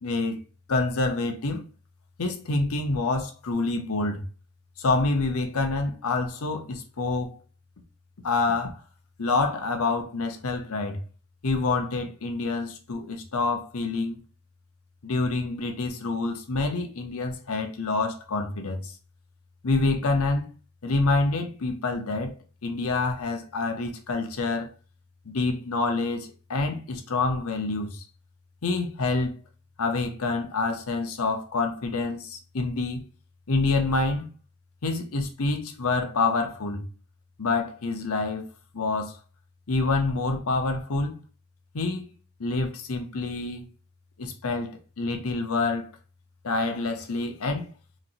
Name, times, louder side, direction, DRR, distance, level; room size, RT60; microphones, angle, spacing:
voice 1, 0.0-0.4 0.7-1.6 2.2-4.2 4.8-7.4 8.2-8.8 9.2-11.0 11.4-14.2 15.0-18.9 19.6-20.5 20.8-22.4 22.6-24.7 25.3-28.0 28.6-29.4 29.8-33.0 33.5-34.3 34.8-36.8 37.4-38.5 38.7-39.2 39.7-41.1 41.7-42.1 42.4-43.7 44.2-45.9 46.4-47.7, left 3 dB, 80° left, 0.8 m, -27 dB
4.2 x 3.0 x 2.6 m
head